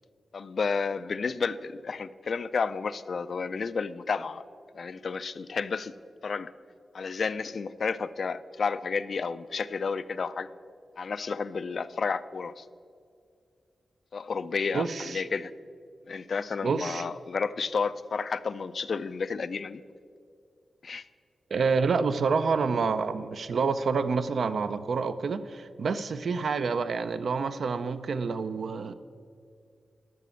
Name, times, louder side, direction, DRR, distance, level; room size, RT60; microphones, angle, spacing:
voice 1, 0.3-4.4 4.7-5.9 6.2-6.5 6.9-10.5 11.0-12.7 14.1-15.5 16.1-19.8 20.8-21.0, left 5 dB, 60° left, 15 dB, 0.3 m, -31 dB
voice 2, 14.7-15.2 16.6-17.0 21.5-28.9, right 5 dB, 65° right, 11 dB, 0.5 m, -28 dB
12.0 x 6.0 x 6.9 m, 2.3 s
wide cardioid pair, 90°, 0 cm